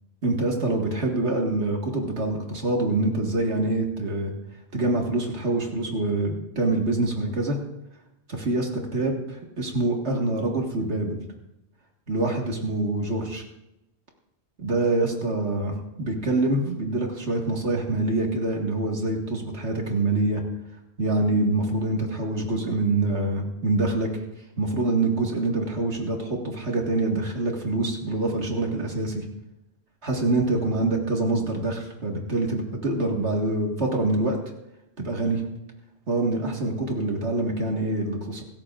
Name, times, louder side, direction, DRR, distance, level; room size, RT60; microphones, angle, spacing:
voice 1, 0.2-4.3 4.7-7.6 8.3-11.2 12.1-13.4 14.6-20.4 21.0-24.1 24.6-29.3 30.0-34.4 35.0-35.4 36.1-38.4, right 2 dB, 80° right, 0 dB, 2.1 m, -25 dB
26.0 x 13.5 x 2.5 m, 0.91 s
omnidirectional pair, 1.1 m